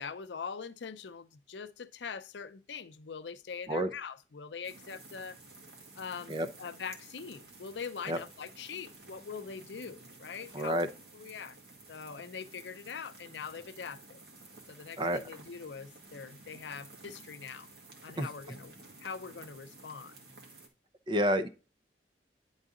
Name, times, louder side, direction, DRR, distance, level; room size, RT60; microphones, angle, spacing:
voice 1, 0.0-5.4 6.0-10.8 11.1-11.6 11.9-14.2 14.7-17.7 18.0-18.7 19.0-20.1, left 6 dB, 80° left, 0.6 m, -43 dB
sound 1, 4.6-20.7, right 2 dB, 65° right, 1.9 m, -53 dB
voice 2, 10.5-10.9 15.0-15.2 18.2-18.3 21.1-21.5, equal, 30° right, 0.7 m, -29 dB
10.0 x 4.0 x 3.7 m
head